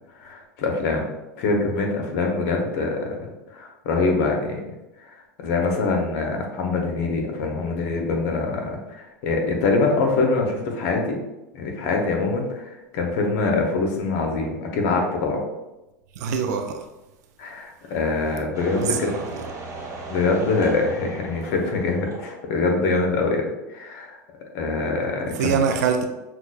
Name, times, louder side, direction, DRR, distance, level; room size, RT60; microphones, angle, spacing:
voice 1, 0.2-1.1 1.4-3.1 3.5-4.6 5.1-11.2 11.5-15.4 17.4-19.1 20.1-24.2 24.5-25.6, left 3 dB, 60° left, 2 dB, 0.8 m, -24 dB
voice 2, 16.2-16.9 18.7-19.2 25.3-26.1, right 6 dB, 70° right, 5 dB, 0.4 m, -24 dB
sound 1, 18.5-23.0 23.3-23.4, right 3 dB, 35° right, 1.1 m, -37 dB
5.9 x 2.3 x 2.3 m, 1.0 s
hypercardioid pair, 90°, 9 cm